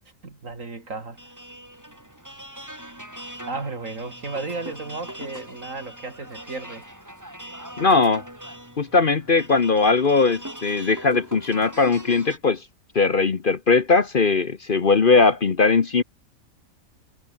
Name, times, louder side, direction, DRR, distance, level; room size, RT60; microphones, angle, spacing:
voice 1, 0.2-1.2 3.5-6.8, right 3 dB, 65° right, 3.5 m, -34 dB
sound 1, 1.2-12.4, right 1 dB, 10° right, 4.6 m, -41 dB
voice 2, 7.8-8.2 8.8-12.6 12.9-16.0, left 4 dB, 40° left, 1.1 m, -19 dB
omnidirectional pair, 1.4 m